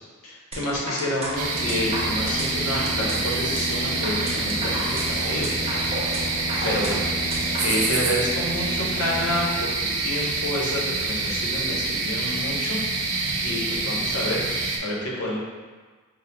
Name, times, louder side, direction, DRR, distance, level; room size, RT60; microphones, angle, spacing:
voice 1, 0.2-6.2 6.6-7.1 7.6-12.8 13.1-14.4 14.8-15.4, left 1 dB, 85° left, -5 dB, 0.9 m, -29 dB
sound 1, 0.5-7.9, right 1 dB, 30° right, 0.5 m, -33 dB
sound 2, 1.4-14.8, right 3 dB, 90° right, 0.5 m, -27 dB
sound 3, 1.5-9.5, left 1 dB, 40° left, 0.7 m, -33 dB
5.7 x 2.2 x 2.2 m, 1.4 s
head